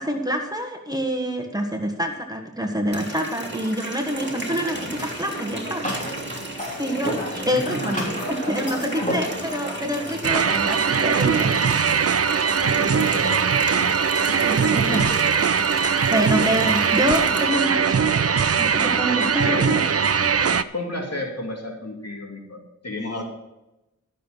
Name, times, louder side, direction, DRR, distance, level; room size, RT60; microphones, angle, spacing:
voice 1, 0.0-5.9 6.8-11.5 14.4-15.0 16.1-18.1 18.6-19.8 20.2-20.6 23.0-23.2, equal, 10° right, 3 dB, 1.6 m, -26 dB
Water tap faucet, 2.9-17.4, right 1 dB, 40° right, 2.1 m, -35 dB
sound 1, 4.1-10.2, equal, 25° left, 3.2 m, -32 dB
voice 2, 7.5-8.0 9.0-9.2 12.6-13.5 13.8-13.9 14.3-14.4 14.8-15.3 19.2-19.8 20.7-23.2, left 1 dB, 55° left, 0 dB, 2.6 m, -32 dB
sound 2, 10.2-20.6, right 6 dB, 55° right, 0.5 m, -21 dB
12.5 x 6.6 x 5.8 m, 0.94 s
wide cardioid pair, 40°, 30 cm